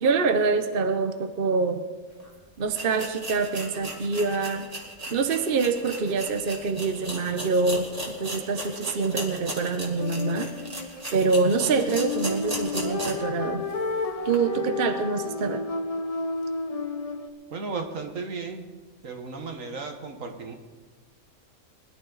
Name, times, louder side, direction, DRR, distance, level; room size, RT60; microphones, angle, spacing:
voice 1, 0.0-1.8 2.6-4.7 5.1-7.9 8.2-10.5 11.1-13.7 14.2-15.7, right 4 dB, 45° right, 7 dB, 0.9 m, -25 dB
sound 1, 2.2-2.3 2.7-13.3 13.7-13.8 14.3-14.4, right 1 dB, 25° right, 2.2 m, -36 dB
sound 2, 10.0-17.3, left 3 dB, 35° left, 0.7 m, -32 dB
voice 2, 17.5-18.7 19.0-20.5, right 4 dB, 65° right, 5 dB, 1.7 m, -35 dB
21.0 x 11.5 x 4.0 m, 1.4 s
omnidirectional pair, 1.5 m